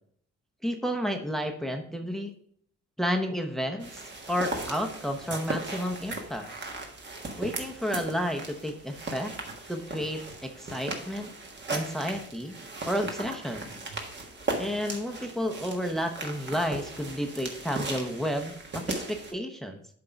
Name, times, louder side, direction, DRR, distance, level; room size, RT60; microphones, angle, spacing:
voice 1, 0.6-2.3 3.0-3.9 4.3-6.5 7.4-9.3 9.7-11.3 11.7-12.5 12.8-13.7 14.6-19.8, equal, ahead, 5 dB, 0.9 m, -31 dB
sound 1, 3.8-19.3, right 2 dB, 35° right, 1.5 m, -37 dB
7.7 x 3.9 x 5.7 m, 0.65 s
cardioid pair, 90°, 30 cm